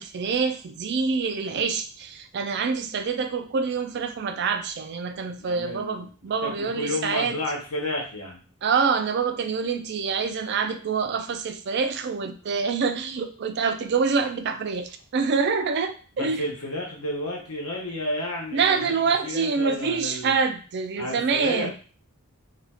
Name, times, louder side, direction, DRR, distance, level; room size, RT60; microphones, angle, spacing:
voice 1, 0.0-7.4 8.6-16.4 18.5-21.7, right 5 dB, 50° right, 8 dB, 0.4 m, -26 dB
voice 2, 5.4-6.1 6.4-8.4 16.2-19.0 19.2-20.3 21.0-21.7, left 1 dB, 85° left, -1 dB, 1.0 m, -31 dB
2.7 x 2.4 x 4.2 m, 0.39 s
head